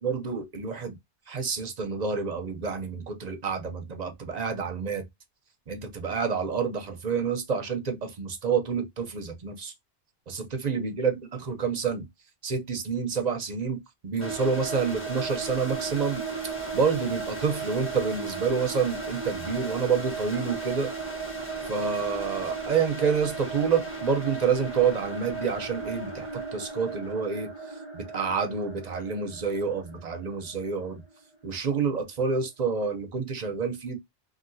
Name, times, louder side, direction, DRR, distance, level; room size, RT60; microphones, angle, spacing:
voice 1, 0.0-1.0 1.3-5.1 5.7-9.7 10.3-12.1 12.4-16.2 16.7-20.9 21.6-27.5 27.9-31.0 31.4-34.0, right 5 dB, 45° right, 0.7 m, -28 dB
sound 1, 14.2-31.0, right 4 dB, 15° left, 1.2 m, -36 dB
2.8 x 2.7 x 2.6 m
omnidirectional pair, 1.0 m